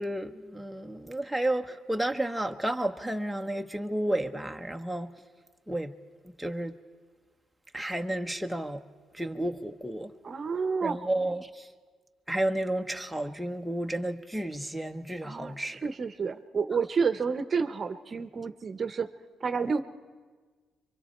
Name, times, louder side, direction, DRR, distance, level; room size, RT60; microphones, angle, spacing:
voice 1, 0.0-5.1 5.7-5.9 6.2-6.7 7.7-8.8 9.1-10.1 10.8-11.7 12.3-15.8 16.7-16.8, right 1 dB, ahead, 1.0 m, -32 dB
voice 2, 10.2-11.0 15.2-15.5 15.8-19.1 19.4-19.8, right 5 dB, 45° right, 0.9 m, -29 dB
25.5 x 24.0 x 4.4 m
cardioid pair, 90°, 0 cm